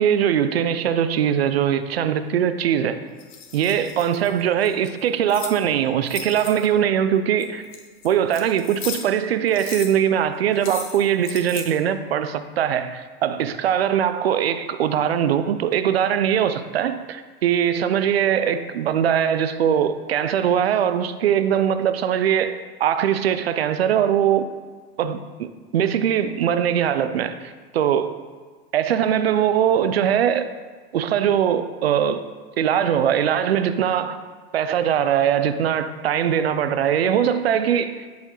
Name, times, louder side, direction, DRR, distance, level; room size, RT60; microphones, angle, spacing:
voice 1, 0.0-3.0 3.5-7.7 8.0-24.5 25.0-28.1 28.7-30.5 30.9-32.2 32.6-34.2 34.5-38.1, right 9 dB, 90° right, 0.5 m, -21 dB
sound 1, 3.2-5.6 6.0-6.8 7.4-9.2 9.5-9.9 10.6-11.7, left 7 dB, 45° left, 1.1 m, -36 dB
11.5 x 4.4 x 3.0 m
hypercardioid pair, 85°, 30 cm